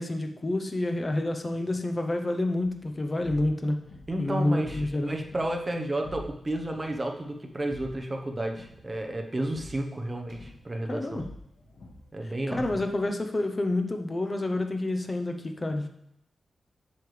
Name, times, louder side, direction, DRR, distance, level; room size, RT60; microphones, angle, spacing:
voice 1, 0.0-3.8 4.2-5.2 10.9-11.2 12.2-15.9, left 2 dB, 25° left, 5 dB, 0.8 m, -29 dB
sound 1, 2.6-13.2, left 1 dB, 60° left, 1.9 m, -48 dB
voice 2, 4.1-11.2 12.1-12.8, right 1 dB, 20° right, 2 dB, 1.0 m, -32 dB
8.3 x 6.6 x 3.3 m, 0.77 s
wide cardioid pair, 130°, 0 cm